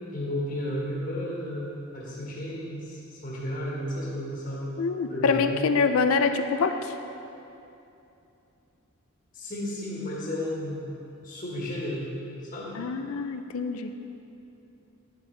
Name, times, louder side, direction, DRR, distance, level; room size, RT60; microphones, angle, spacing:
voice 1, 0.1-4.6 5.1-5.7 9.3-10.9 11.2-12.1 12.5-12.8, left 1 dB, 40° left, -6 dB, 1.6 m, -33 dB
voice 2, 4.8-6.9 12.7-13.9, left 4 dB, 75° left, 8 dB, 0.4 m, -25 dB
10.0 x 8.0 x 3.3 m, 2.8 s
head